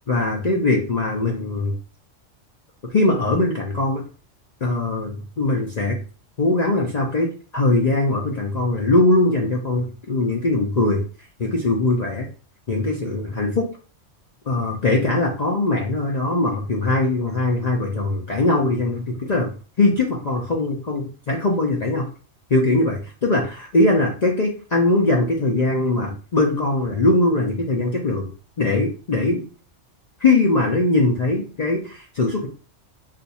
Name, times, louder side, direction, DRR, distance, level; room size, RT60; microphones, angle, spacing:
voice 1, 0.1-1.7 2.9-4.0 4.6-6.0 6.4-11.0 11.4-12.3 12.7-13.7 14.5-19.5 19.8-22.0 22.5-28.3 28.6-29.4 30.2-32.5, left 2 dB, 50° left, 0 dB, 0.5 m, -21 dB
2.5 x 2.3 x 4.0 m, 0.36 s
omnidirectional pair, 1.3 m